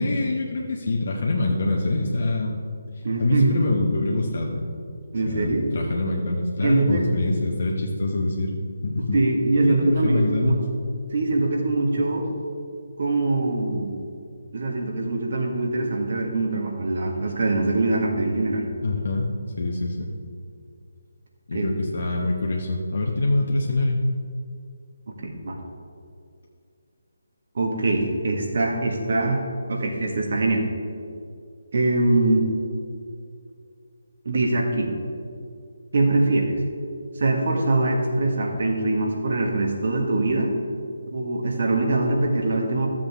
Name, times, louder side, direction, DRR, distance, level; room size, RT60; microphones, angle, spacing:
voice 1, 0.0-2.6 2.9-4.7 5.3-8.5 8.8-9.2 9.6-10.6 18.8-19.3 19.6-20.1 21.5-24.0, left 2 dB, 60° left, -1 dB, 1.1 m, -25 dB
voice 2, 3.0-3.6 5.1-5.7 6.6-7.1 9.1-10.6 11.1-12.2 13.0-14.0 14.5-18.7 21.5-21.7 25.2-25.6 27.6-29.4 29.7-30.7 31.7-32.5 34.3-35.0 35.9-36.6 37.2-40.5 41.1-42.9, right 2 dB, 55° right, 1 dB, 1.7 m, -23 dB
13.5 x 7.4 x 3.6 m, 2.3 s
figure-of-eight pair, 150°, 0 cm